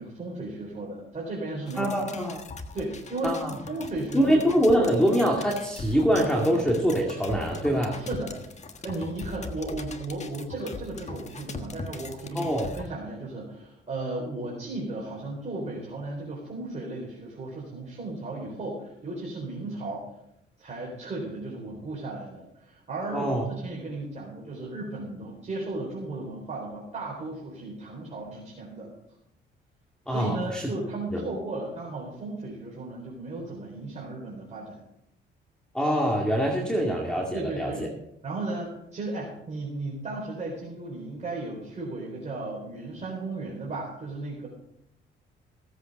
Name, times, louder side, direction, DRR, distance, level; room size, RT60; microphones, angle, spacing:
voice 1, 0.0-2.1 2.7-3.4 3.7-4.4 7.9-8.5 8.8-20.1 20.6-28.9 30.1-34.8 37.3-37.8 38.2-44.5, right 2 dB, 35° right, -3 dB, 4.1 m, -35 dB
sound 1, 1.7-12.9, left 3 dB, 35° left, 1.4 m, -41 dB
voice 2, 1.8-2.4 3.2-3.5 4.1-8.0 12.3-12.7 23.1-23.4 30.1-30.7 31.1-31.2 35.7-37.9, equal, 5° left, -1 dB, 2.2 m, -24 dB
16.5 x 8.2 x 5.3 m, 0.79 s
cardioid pair, 90°, 20 cm